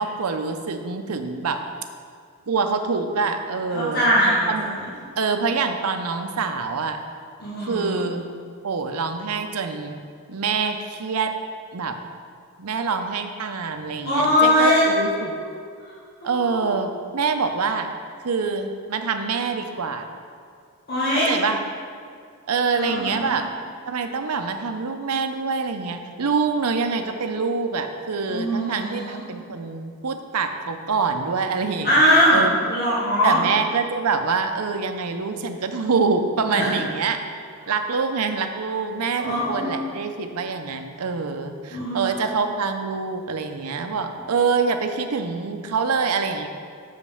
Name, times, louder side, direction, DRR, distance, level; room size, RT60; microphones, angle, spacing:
voice 1, 0.0-1.6 2.5-4.1 4.5-4.7 5.2-7.0 7.7-8.2 8.6-10.0 10.3-11.3 11.7-12.0 12.6-15.3 16.2-17.9 18.2-20.1 21.3-21.6 22.5-23.5 23.8-32.5 33.2-37.2 37.7-46.5, right 4 dB, 90° right, 7 dB, 0.7 m, -25 dB
voice 2, 3.7-4.9 7.4-8.0 14.1-15.4 16.2-16.7 20.9-21.3 22.7-23.4 28.3-29.2 31.8-33.4 36.5-36.7 39.2-39.9 41.7-42.2, equal, 45° left, -8 dB, 1.8 m, -21 dB
6.4 x 5.1 x 7.0 m, 2.2 s
head